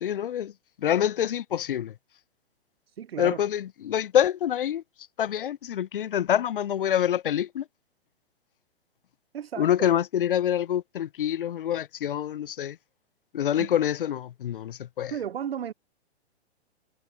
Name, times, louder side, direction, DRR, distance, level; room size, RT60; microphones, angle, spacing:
voice 1, 0.0-0.5 0.8-1.9 3.2-4.8 5.2-7.6 9.6-12.8 13.3-15.1, left 10 dB, 50° left, 0.5 m, -26 dB
voice 2, 3.0-3.4 9.3-9.9 13.6-13.7 15.1-15.7, right 9 dB, 60° right, 0.7 m, -34 dB
figure-of-eight pair, 115°, 33 cm